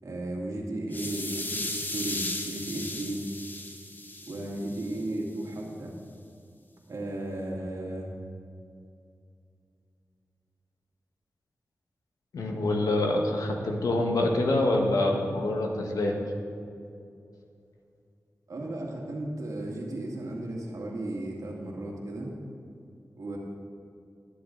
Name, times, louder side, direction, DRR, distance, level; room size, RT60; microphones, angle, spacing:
voice 1, 0.0-3.2 4.2-5.9 6.9-8.1 18.5-22.3 23.2-23.4, right 1 dB, 70° right, -2 dB, 2.4 m, -35 dB
sound 1, 0.9-5.0, left 1 dB, 30° left, 1.5 m, -36 dB
voice 2, 12.3-16.2, left 2 dB, 90° left, 1 dB, 1.5 m, -26 dB
20.0 x 7.7 x 4.0 m, 2.5 s
cardioid pair, 40°, 6 cm